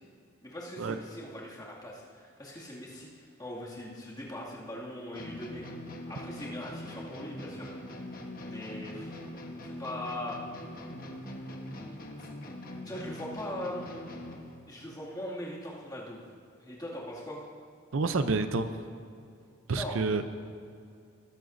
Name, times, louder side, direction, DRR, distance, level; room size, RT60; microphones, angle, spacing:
voice 1, 0.4-5.7 6.1-7.7 8.1-8.2 8.5-9.2 9.7-10.4 12.8-13.9 14.7-16.2 16.6-17.4 19.7-20.0, left 1 dB, 20° left, -5 dB, 2.2 m, -40 dB
sound 1, 5.1-14.6, left 1 dB, 45° left, 1.2 m, -42 dB
voice 2, 17.9-18.7 19.7-20.2, right 3 dB, 75° right, 10 dB, 0.6 m, -28 dB
20.5 x 11.0 x 2.6 m, 2.4 s
head